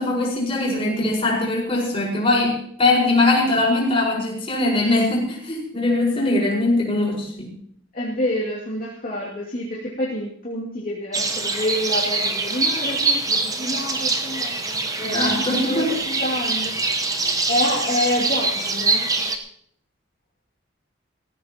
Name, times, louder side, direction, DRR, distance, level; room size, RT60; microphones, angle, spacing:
voice 1, 0.0-7.5 15.0-16.0, left 2 dB, 30° left, -4 dB, 5.1 m, -21 dB
voice 2, 7.9-14.6 15.2-17.2 17.5-19.1, left 1 dB, 45° left, -6 dB, 2.6 m, -27 dB
sound 1, 11.1-19.4, right 3 dB, 15° right, 1.0 m, -24 dB
19.5 x 15.0 x 3.0 m, 0.67 s
head